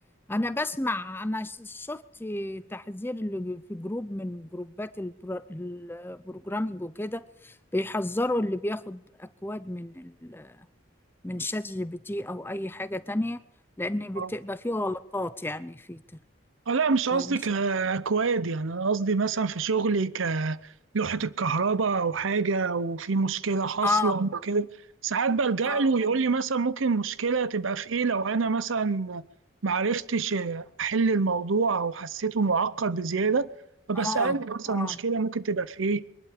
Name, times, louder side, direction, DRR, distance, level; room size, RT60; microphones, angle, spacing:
voice 1, 0.3-10.7 11.2-13.4 13.8-16.0 17.1-17.4 23.8-24.2 25.6-25.9 33.9-34.4 34.7-35.0, left 2 dB, 10° left, 0.6 m, -32 dB
voice 2, 16.7-20.6 20.9-24.7 25.0-29.2 29.6-33.5 33.9-36.0, right 4 dB, 75° right, 0.7 m, -26 dB
22.5 x 11.5 x 5.0 m
head